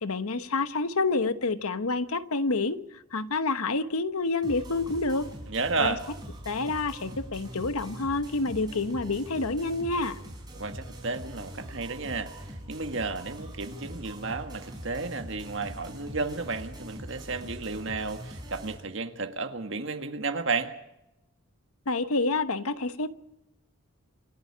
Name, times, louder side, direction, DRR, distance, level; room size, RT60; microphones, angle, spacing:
voice 1, 0.0-2.8 3.1-5.3 5.8-5.9 6.4-10.2 21.9-23.1, left 3 dB, 85° left, 1.1 m, -28 dB
sound 1, 4.4-18.7, equal, 20° right, 5.2 m, -42 dB
voice 2, 5.5-6.0 10.6-12.3 12.7-20.7, right 3 dB, 60° right, 1.7 m, -32 dB
27.5 x 11.5 x 8.6 m
head